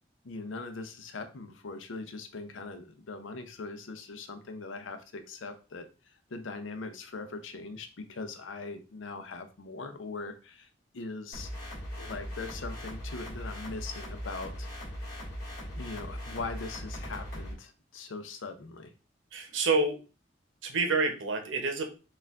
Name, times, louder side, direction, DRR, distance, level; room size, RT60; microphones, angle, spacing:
voice 1, 0.2-10.7 10.9-11.5 12.0-14.7 15.7-18.9, left 3 dB, 85° left, 8 dB, 0.6 m, -41 dB
sound 1, 11.3-17.5, equal, 45° left, 1.7 m, -39 dB
voice 2, 19.3-20.0 20.6-21.8, right 3 dB, 85° right, 5 dB, 0.8 m, -28 dB
4.4 x 2.5 x 3.5 m, 0.33 s
head